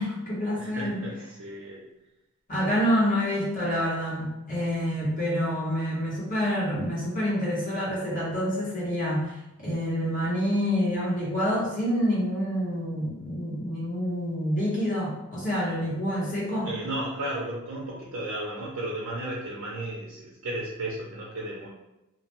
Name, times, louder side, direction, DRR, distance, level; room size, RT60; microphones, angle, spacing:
voice 1, 0.0-1.0 2.5-16.7, equal, 40° left, -7 dB, 1.0 m, -27 dB
voice 2, 0.5-1.8 3.0-3.2 16.6-21.7, right 1 dB, 90° right, -4 dB, 0.5 m, -34 dB
2.2 x 2.1 x 2.9 m, 0.95 s
head